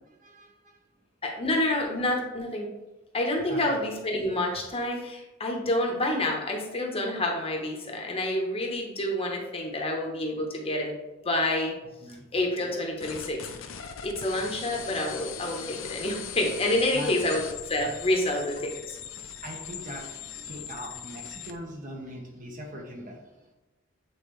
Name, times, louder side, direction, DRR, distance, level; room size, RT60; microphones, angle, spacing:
voice 1, 0.2-0.8 3.5-3.8 12.0-12.3 16.9-17.3 19.3-23.4, equal, 40° right, 1 dB, 1.1 m, -41 dB
voice 2, 1.2-2.7 3.1-10.9 11.2-11.7 12.3-13.4 14.0-17.4 17.7-19.0, left 1 dB, 30° left, 1 dB, 0.9 m, -28 dB
sound 1, 13.0-21.6, left 8 dB, 70° left, 0.5 m, -40 dB
8.0 x 3.7 x 3.2 m, 1.0 s
head